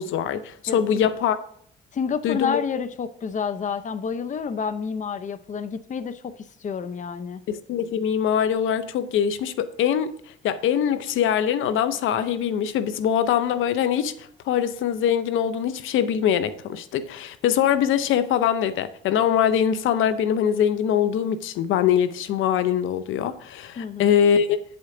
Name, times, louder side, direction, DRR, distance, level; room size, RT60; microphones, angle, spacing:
voice 1, 0.0-1.4 2.2-2.6 7.5-10.1 10.4-24.6, left 9 dB, 80° left, 0.6 m, -23 dB
voice 2, 0.7-1.0 1.9-6.3 6.6-7.4 23.8-24.2, left 6 dB, 40° left, 0.6 m, -29 dB
8.6 x 7.9 x 3.7 m
cardioid pair, 90°, 20 cm